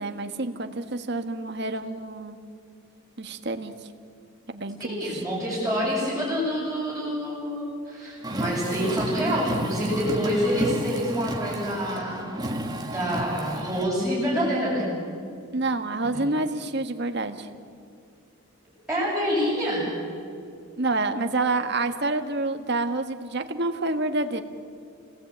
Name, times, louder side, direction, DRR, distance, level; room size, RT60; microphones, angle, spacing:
voice 1, 0.0-2.4 3.2-3.7 4.5-5.2 15.5-17.5 20.8-24.4, right 2 dB, 50° right, 7 dB, 1.5 m, -28 dB
voice 2, 4.8-12.2 12.8-14.9 16.0-16.2 18.9-19.9, equal, ahead, -11 dB, 7.6 m, -27 dB
Car, 8.2-13.9, right 1 dB, 20° right, 1.7 m, -31 dB
29.0 x 19.0 x 8.8 m, 2.4 s
head